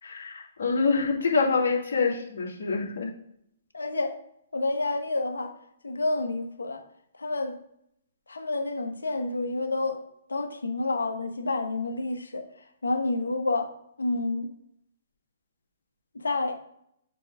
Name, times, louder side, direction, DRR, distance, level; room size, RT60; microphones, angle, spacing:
voice 1, 0.0-3.1, left 4 dB, 70° left, -1 dB, 2.2 m, -26 dB
voice 2, 3.7-4.1 4.5-5.5 5.8-6.8 7.2-7.6 8.3-10.0 10.3-12.4 12.8-13.7 14.0-14.5 16.1-16.6, left 2 dB, 85° left, 5 dB, 1.3 m, -29 dB
7.6 x 3.6 x 3.7 m, 0.73 s
hypercardioid pair, 130°, 0 cm